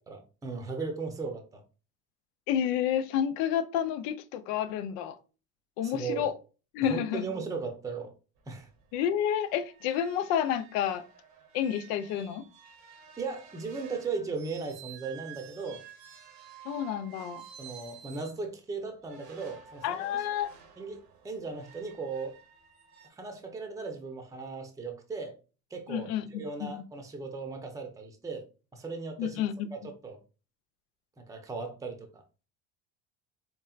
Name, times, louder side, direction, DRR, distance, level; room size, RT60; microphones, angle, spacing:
voice 1, 0.1-1.6 5.8-6.3 6.9-8.1 8.5-8.7 13.2-15.8 17.6-20.2 20.8-22.4 23.1-25.4 25.7-28.4 28.7-29.4 29.7-30.2 31.2-32.2, right 4 dB, 10° right, 0.7 m, -37 dB
voice 2, 2.5-5.2 5.8-6.3 6.7-7.2 8.9-11.0 11.5-12.4 16.7-17.4 19.8-20.5 25.9-26.8 29.2-29.7, left 9 dB, 75° left, 0.6 m, -30 dB
sound 1, 8.4-8.5 8.8-8.9 9.2-18.4 19.0-23.1, right 9 dB, 80° right, 1.2 m, -52 dB
4.4 x 3.2 x 2.3 m
supercardioid pair, 115°, 33 cm